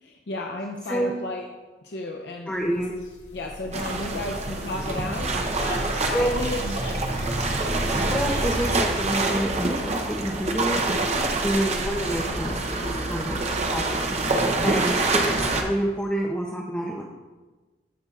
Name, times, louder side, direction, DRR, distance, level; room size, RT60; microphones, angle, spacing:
voice 1, 0.0-1.5 1.8-2.5 3.3-6.7 12.8-13.1 14.3-15.0, left 2 dB, 65° left, 1 dB, 0.6 m, -33 dB
sound 1, 2.5-8.8, equal, 80° left, 2.3 m, -34 dB
voice 2, 2.5-3.0 6.1-6.5 8.1-10.8 11.4-13.4 13.7-14.0 14.6-17.0, right 1 dB, 5° left, -2 dB, 0.5 m, -28 dB
sound 2, 3.7-15.6, right 2 dB, 40° right, 0.7 m, -26 dB
14.5 x 5.5 x 2.4 m, 1.2 s
head